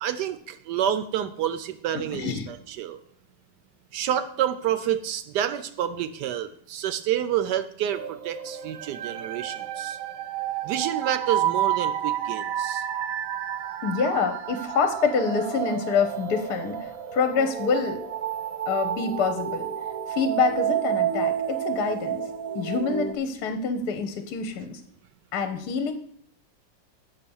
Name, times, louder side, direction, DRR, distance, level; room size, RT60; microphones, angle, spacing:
voice 1, 0.0-3.0 3.9-10.0 10.6-12.8, right 10 dB, 70° right, 11 dB, 1.0 m, -28 dB
voice 2, 2.1-2.5 13.8-18.0 18.7-19.7 20.1-22.2 22.5-24.8 25.3-25.9, left 5 dB, 60° left, 7 dB, 1.2 m, -26 dB
sound 1, 7.9-23.1, right 10 dB, 90° right, 0.7 m, -30 dB
6.8 x 5.7 x 7.0 m, 0.63 s
omnidirectional pair, 2.2 m